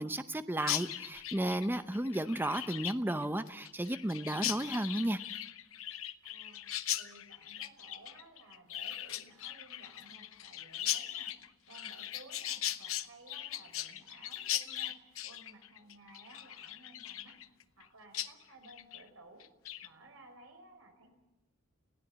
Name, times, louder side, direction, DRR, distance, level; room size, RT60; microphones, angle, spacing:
voice 1, 0.0-5.2, right 1 dB, 10° right, 11 dB, 0.7 m, -33 dB
Chirp tweet, 0.6-17.9 18.1-18.3 18.6-19.0 19.4-19.9, left 12 dB, 75° left, 0.8 m, -39 dB
voice 2, 6.2-6.7 7.0-11.4 11.7-17.4 17.8-19.5 19.8-21.1, right 2 dB, 80° right, 4 dB, 5.3 m, -57 dB
20.5 x 16.0 x 8.0 m, 1.0 s
head